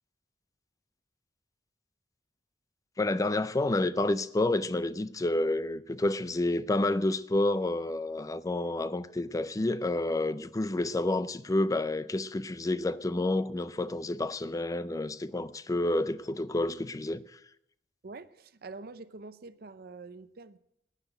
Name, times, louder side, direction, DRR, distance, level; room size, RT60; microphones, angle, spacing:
voice 1, 3.0-17.2, left 2 dB, 20° left, 0.4 m, -29 dB
voice 2, 18.0-20.6, right 3 dB, 60° right, 0.6 m, -46 dB
9.9 x 9.9 x 9.1 m
head